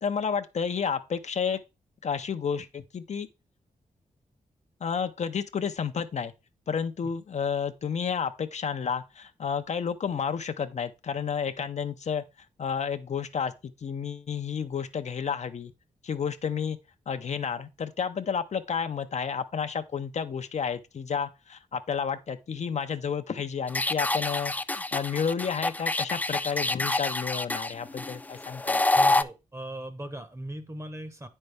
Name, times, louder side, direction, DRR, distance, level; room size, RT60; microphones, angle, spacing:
voice 1, 0.0-1.6 2.0-3.3 4.8-6.3 6.7-12.2 12.6-15.7 16.0-16.8 17.1-28.8, left 6 dB, 55° left, 0.6 m, -31 dB
sound 1, 23.7-29.2, left 2 dB, 10° left, 0.3 m, -27 dB
voice 2, 28.9-31.3, right 1 dB, 20° right, 1.0 m, -38 dB
8.9 x 5.4 x 3.4 m
wide cardioid pair, 95°, 14 cm